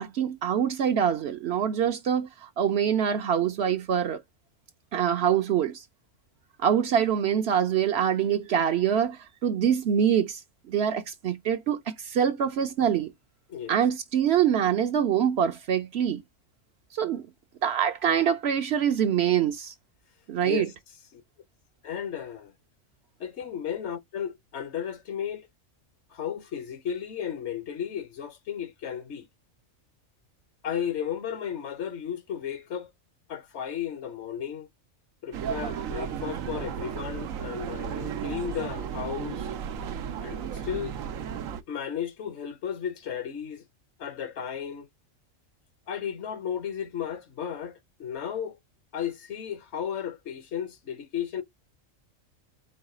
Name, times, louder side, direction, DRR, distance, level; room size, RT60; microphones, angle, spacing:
voice 1, 0.0-4.2 4.9-5.8 6.6-10.4 10.7-13.1 13.7-16.2 16.9-17.3 17.6-19.7 20.3-20.7, right 8 dB, 60° right, 0.8 m, -25 dB
voice 2, 21.8-22.5 23.2-25.5 26.1-29.3 30.6-32.9 33.3-34.7 35.2-39.5 40.2-40.9 41.7-43.6 44.0-44.9 45.9-48.6 48.9-51.4, left 8 dB, 60° left, 1.0 m, -34 dB
sound 1, 35.3-41.6, right 8 dB, 90° right, 1.1 m, -34 dB
4.8 x 2.3 x 4.8 m
omnidirectional pair, 1.4 m